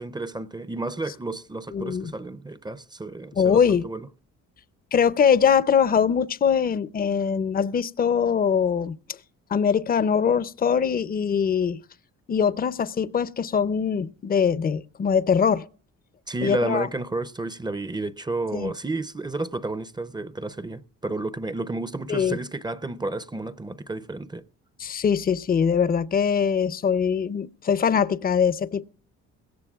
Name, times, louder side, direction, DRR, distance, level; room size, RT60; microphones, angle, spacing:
voice 1, 0.0-4.1 16.3-24.4, right 2 dB, 15° right, 0.5 m, -31 dB
voice 2, 1.7-2.1 3.4-3.9 4.9-9.0 9.5-11.8 12.3-15.7 16.4-16.9 18.5-18.7 22.1-22.4 24.8-28.8, left 7 dB, 30° left, 0.5 m, -22 dB
21.5 x 17.5 x 2.3 m
cardioid pair, 90°, 30 cm